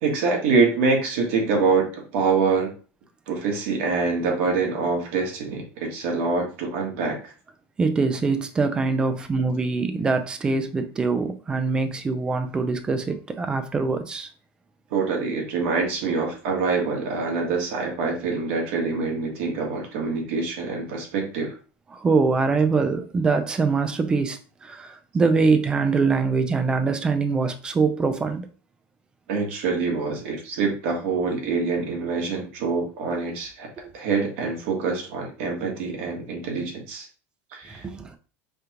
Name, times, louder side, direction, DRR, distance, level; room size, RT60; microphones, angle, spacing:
voice 1, 0.0-2.7 3.3-7.3 14.9-21.5 29.3-33.7 33.9-37.1 37.5-37.8, right 4 dB, 65° right, 1.3 m, -25 dB
voice 2, 7.8-14.3 21.9-28.5 33.8-33.9 37.7-38.2, right 4 dB, 10° right, 0.4 m, -23 dB
5.1 x 2.3 x 2.9 m
supercardioid pair, 170°, 7 cm